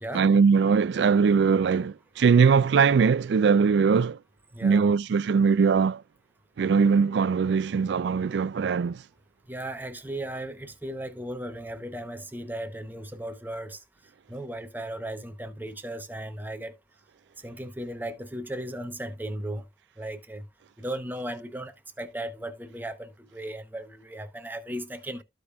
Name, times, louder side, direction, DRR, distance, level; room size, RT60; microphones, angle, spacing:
voice 1, 0.1-4.2 4.6-6.0 6.6-9.0, right 5 dB, 65° right, 0.3 m, -21 dB
voice 2, 4.5-4.9 9.5-13.8 14.3-16.8 17.4-19.6 20.0-20.5 20.8-25.2, right 1 dB, 10° right, 0.7 m, -36 dB
14.5 x 5.0 x 2.3 m
head